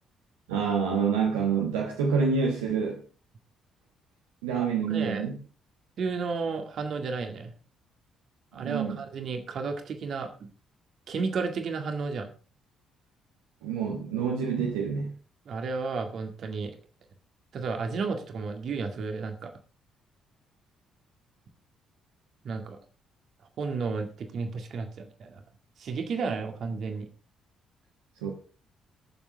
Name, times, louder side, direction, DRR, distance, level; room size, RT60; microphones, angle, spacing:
voice 1, 0.5-3.0 4.4-5.4 8.6-9.0 13.6-15.1 28.2-28.3, right 6 dB, 70° right, 0 dB, 1.3 m, -27 dB
voice 2, 4.5-5.2 6.0-7.5 8.5-10.5 11.1-12.3 15.5-16.7 17.5-19.5 22.4-22.8 23.6-25.4 25.8-27.1, right 4 dB, 50° right, 5 dB, 1.9 m, -32 dB
19.0 x 7.2 x 3.6 m, 0.35 s
figure-of-eight pair, 45°, 0 cm